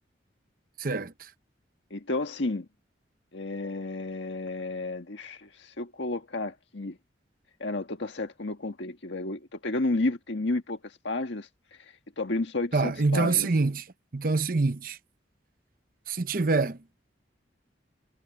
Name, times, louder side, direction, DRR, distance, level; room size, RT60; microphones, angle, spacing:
voice 1, 0.8-1.3 12.7-13.9 14.1-15.0 16.1-16.8, right 3 dB, 50° right, 0.8 m, -26 dB
voice 2, 1.9-2.7 3.3-7.0 7.6-11.5 11.8-13.5, left 2 dB, 80° left, 1.6 m, -32 dB
head